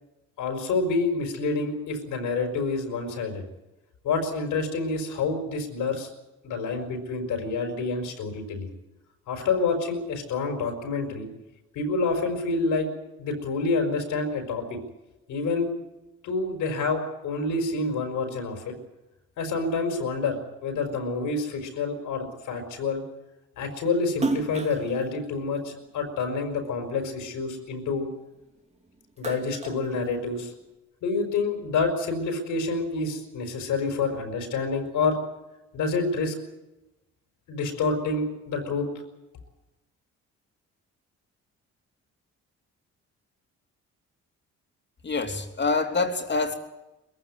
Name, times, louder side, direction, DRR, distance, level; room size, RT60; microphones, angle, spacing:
voice 1, 0.4-3.4 4.0-6.1 6.4-8.7 9.3-11.3 11.7-12.9 13.2-14.6 15.3-15.7 16.2-18.7 19.4-23.0 23.6-28.1 29.2-30.5 31.0-35.2 35.7-36.3 37.5-38.9, left 3 dB, 85° left, 5 dB, 4.9 m, -28 dB
Splash splatter, 24.1-26.7 27.1-28.6 28.9-30.7, right 3 dB, 20° right, 2.6 m, -34 dB
voice 2, 45.0-46.6, left 3 dB, 35° left, 5 dB, 3.1 m, -26 dB
22.0 x 15.5 x 9.6 m, 1.0 s
cardioid pair, 90°, 30 cm